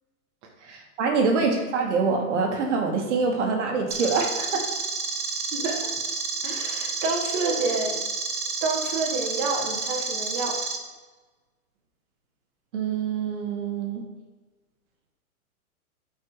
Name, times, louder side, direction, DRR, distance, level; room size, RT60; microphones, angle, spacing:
voice 1, 0.6-4.6 12.7-14.0, right 4 dB, 55° right, 2 dB, 1.6 m, -25 dB
sound 1, 3.9-10.8, right 4 dB, 80° right, 1.3 m, -30 dB
voice 2, 5.5-5.9 6.4-8.0 8.6-10.6, right 3 dB, 30° right, 0 dB, 1.2 m, -28 dB
8.7 x 4.7 x 3.2 m, 1.3 s
hypercardioid pair, 120°, 44 cm